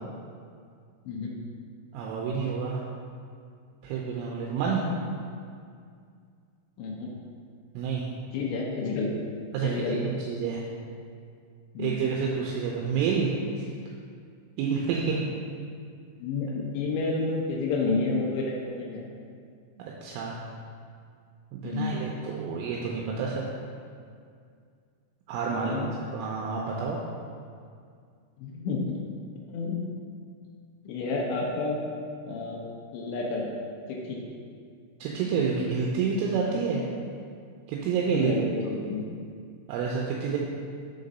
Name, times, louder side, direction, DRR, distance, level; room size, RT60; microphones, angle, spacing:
voice 1, 1.9-2.8 3.8-4.8 7.8-8.1 9.5-10.6 11.8-13.3 13.6-13.7 14.6-15.2 20.0-20.4 21.5-23.4 25.3-25.8 26.1-27.0 35.0-36.8 37.7-38.4 39.7-40.4, right 5 dB, 85° right, -3 dB, 3.1 m, -28 dB
voice 2, 6.8-7.1 8.3-9.2 9.6-10.0 11.7-12.0 16.2-19.1 21.6-21.9 25.5-25.9 28.4-29.1 29.5-29.9 30.9-31.8 32.3-32.6 32.9-33.4 33.9-34.2 38.1-39.0, left 3 dB, 80° left, -1 dB, 2.7 m, -30 dB
7.3 x 3.8 x 5.3 m, 2.2 s
omnidirectional pair, 5.7 m